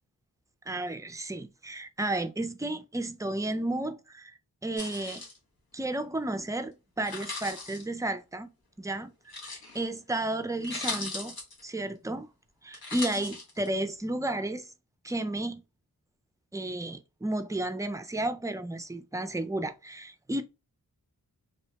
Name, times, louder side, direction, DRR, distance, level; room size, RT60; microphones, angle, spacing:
voice 1, 0.7-5.2 5.7-8.5 8.8-11.4 11.6-12.3 12.6-14.7 15.0-15.6 16.5-20.4, right 1 dB, 10° right, 0.3 m, -33 dB
sound 1, 4.8-5.4 7.0-7.8 9.3-9.9 10.3-10.4 10.6-11.6 12.7-13.7, left 3 dB, 75° left, 1.0 m, -38 dB
2.8 x 2.1 x 2.8 m
wide cardioid pair, 50°, 37 cm